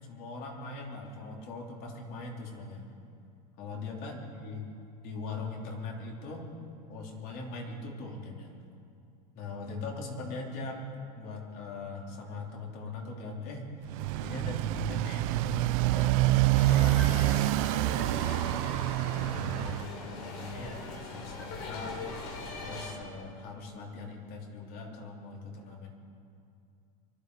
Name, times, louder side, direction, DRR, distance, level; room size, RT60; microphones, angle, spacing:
voice 1, 0.1-2.9 3.6-4.7 5.0-6.5 6.9-8.6 9.3-13.9 14.2-17.1 18.2-18.6 19.1-22.0 22.6-25.9, left 3 dB, 55° left, 0 dB, 3.2 m, -40 dB
Motorcycle, 13.8-19.9, right 18 dB, 65° right, 0.4 m, -27 dB
sound 1, 16.5-22.9, left 3 dB, 70° left, 3.7 m, -40 dB
24.5 x 12.5 x 4.7 m, 2.5 s
supercardioid pair, 125°, 19 cm